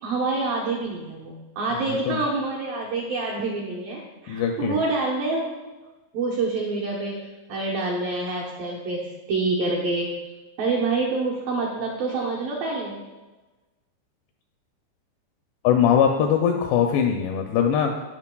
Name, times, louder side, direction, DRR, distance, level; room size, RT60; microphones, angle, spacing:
voice 1, 0.0-5.6 6.1-10.1 10.6-13.0, right 3 dB, 75° right, -4 dB, 2.0 m, -27 dB
voice 2, 4.3-4.8 15.6-17.9, left 8 dB, 85° left, 3 dB, 2.4 m, -21 dB
15.5 x 5.7 x 2.2 m, 1.2 s
omnidirectional pair, 5.2 m